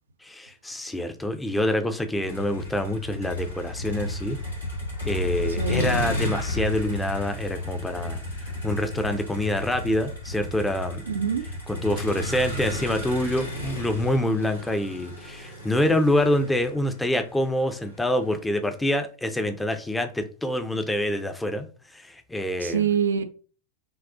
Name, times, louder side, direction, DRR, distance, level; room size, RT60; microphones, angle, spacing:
voice 1, 0.2-4.4 5.0-8.2 8.6-11.0 11.7-21.7 21.9-22.9, left 1 dB, 5° left, 0.5 m, -26 dB
Motor vehicle (road), 2.2-18.3, left 1 dB, 85° left, 1.7 m, -33 dB
voice 2, 5.5-6.0 11.1-11.4 22.6-23.2, right 6 dB, 70° right, 0.4 m, -25 dB
5.9 x 2.3 x 2.5 m
figure-of-eight pair, 90°, 0 cm